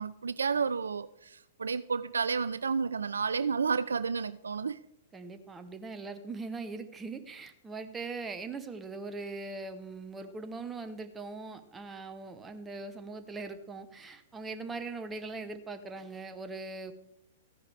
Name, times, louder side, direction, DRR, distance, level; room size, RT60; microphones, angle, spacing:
voice 1, 0.0-4.8, right 5 dB, 70° right, 0.3 m, -31 dB
voice 2, 5.1-16.9, right 3 dB, 15° right, 0.9 m, -41 dB
14.5 x 9.8 x 3.4 m
figure-of-eight pair, 105°, 0 cm